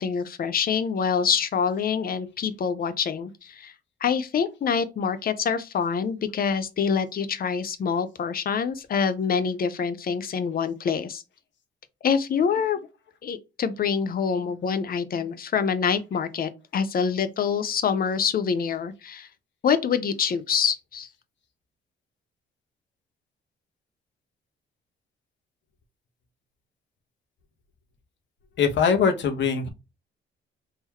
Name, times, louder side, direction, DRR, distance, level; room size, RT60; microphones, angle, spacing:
voice 1, 0.0-3.7 4.0-11.2 12.0-12.8 13.2-19.3 19.6-21.1, left 6 dB, 50° left, 0.7 m, -26 dB
voice 2, 28.6-29.7, left 6 dB, 65° left, 1.0 m, -22 dB
3.8 x 2.9 x 2.9 m
cardioid pair, 90°, 20 cm